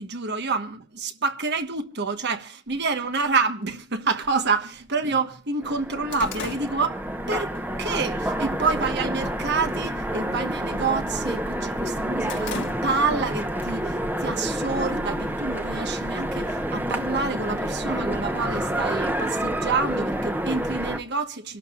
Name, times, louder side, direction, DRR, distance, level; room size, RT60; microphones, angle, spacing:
voice 1, 0.0-21.6, right 4 dB, 60° right, 1.3 m, -28 dB
sound 1, 3.2-3.3 4.2-4.3 4.8-4.9 5.2-7.6 8.0-8.3 8.8-9.3 9.6-9.9 10.2-11.4 11.8-13.3 13.6-13.7 14.6-15.5, left 4 dB, 65° left, 1.7 m, -39 dB
Train, 5.6-21.0, right 1 dB, 10° right, 1.0 m, -28 dB
27.0 x 12.5 x 2.4 m
head